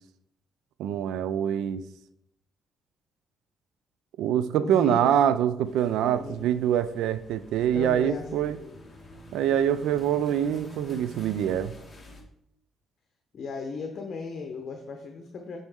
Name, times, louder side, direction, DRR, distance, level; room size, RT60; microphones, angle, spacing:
voice 1, 0.8-1.8 4.2-8.6 9.3-11.7, right 10 dB, 85° right, 13 dB, 0.4 m, -25 dB
voice 2, 4.6-5.1 6.0-6.5 7.7-8.8 13.3-15.6, left 4 dB, 55° left, 3 dB, 1.0 m, -36 dB
sound 1, 5.7-12.2, equal, 20° left, 1.7 m, -48 dB
9.1 x 4.3 x 3.6 m, 0.77 s
cardioid pair, 90°, 0 cm